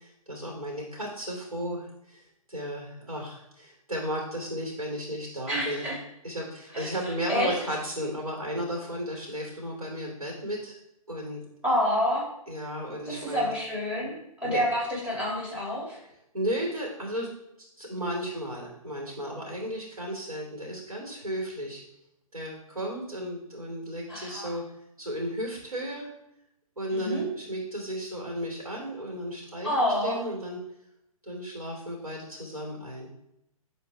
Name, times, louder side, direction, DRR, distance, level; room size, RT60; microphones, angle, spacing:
voice 1, 0.0-2.2 2.5-5.9 6.2-10.8 11.1-11.4 12.5-13.5 14.4-14.6 16.3-17.3 17.8-21.8 22.3-24.6 25.0-26.1 26.8-30.6 31.2-33.1, equal, 80° right, -2 dB, 2.8 m, -34 dB
voice 2, 5.5-6.0 6.7-6.9 7.3-7.6 11.6-12.2 13.1-14.2 14.4-16.0 24.1-24.5 26.9-27.3 29.6-30.2, equal, 5° right, -5 dB, 2.6 m, -28 dB
10.5 x 4.0 x 3.4 m, 0.81 s
figure-of-eight pair, 130°, 19 cm